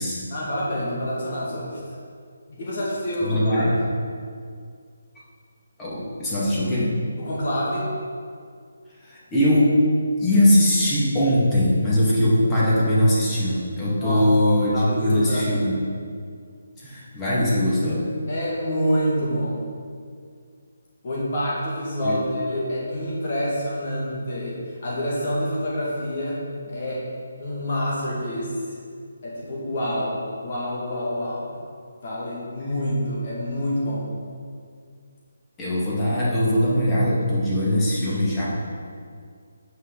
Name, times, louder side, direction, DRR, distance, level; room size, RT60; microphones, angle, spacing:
voice 1, 0.3-1.8 2.5-3.7 7.2-7.9 13.9-14.2 14.7-15.7 18.3-19.6 21.0-27.0 27.4-28.8 29.2-31.5 32.0-34.0, equal, 45° left, -6 dB, 2.2 m, -27 dB
voice 2, 3.2-3.8 5.8-6.9 9.0-9.8 10.2-15.7 16.8-18.0 22.0-22.2 35.6-38.5, left 1 dB, 15° left, -8 dB, 2.1 m, -21 dB
8.9 x 6.1 x 4.0 m, 2.2 s
figure-of-eight pair, 150°, 0 cm